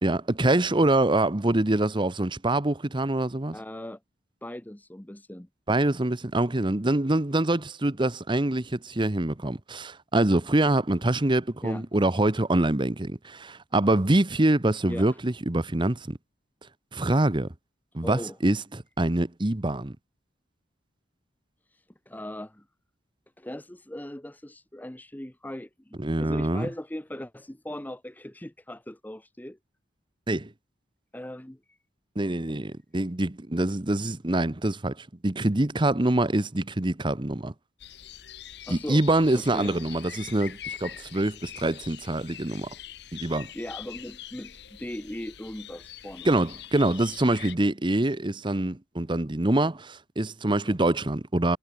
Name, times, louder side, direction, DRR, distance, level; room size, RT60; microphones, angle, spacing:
voice 1, 0.0-3.6 5.7-16.2 16.9-17.5 17.9-19.9 26.0-26.7 30.3-30.5 32.2-37.5 38.7-42.7 43.1-43.5 46.2-51.6, right 1 dB, 25° right, 1.0 m, -25 dB
voice 2, 3.5-4.0 4.4-5.5 11.6-11.8 14.9-15.1 18.0-18.4 21.7-22.6 23.4-29.6 31.1-31.8 32.5-32.6 38.7-39.0 39.3-39.8 43.5-46.3 50.6-50.7, left 1 dB, 10° left, 0.8 m, -39 dB
sound 1, 37.8-47.6, left 10 dB, 65° left, 1.3 m, -43 dB
head